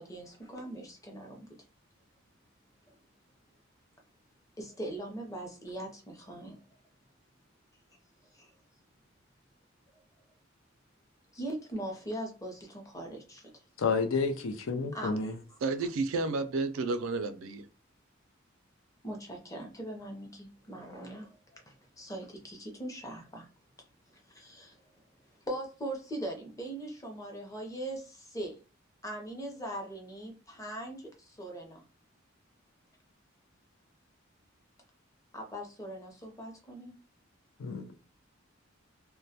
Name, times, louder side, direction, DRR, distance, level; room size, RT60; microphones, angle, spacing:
voice 1, 0.0-1.5 4.6-6.6 8.3-8.5 11.3-13.5 14.9-15.9 19.0-23.5 24.1-24.8 25.5-28.5 29.0-31.8 35.3-37.0, right 1 dB, 15° left, 0.6 m, -41 dB
voice 2, 13.8-15.3 37.6-37.9, left 4 dB, 70° left, 0.5 m, -30 dB
voice 3, 15.6-17.7, right 3 dB, 75° right, 0.4 m, -31 dB
2.2 x 2.1 x 2.7 m
head